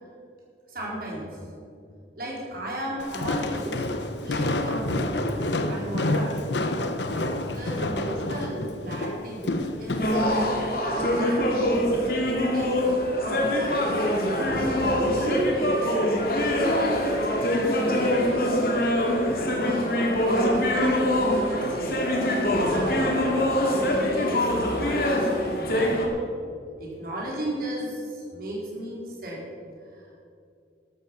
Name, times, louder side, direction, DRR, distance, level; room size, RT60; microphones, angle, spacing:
voice 1, 0.7-1.3 2.2-3.8 4.2-5.1 5.7-6.4 7.1-9.5 9.8-10.1 10.8-12.8 13.2-13.9 14.7-15.9 16.4-18.2 19.3-22.0 22.7-25.9 26.8-29.4 29.9-30.1, right 1 dB, 50° right, -3 dB, 4.5 m, -34 dB
Walk footsteps, 3.0-10.2, left 1 dB, 75° left, 1.0 m, -28 dB
sound 1, 10.0-26.1, left 1 dB, 55° left, 2.4 m, -24 dB
13.5 x 13.0 x 5.9 m, 2.4 s
head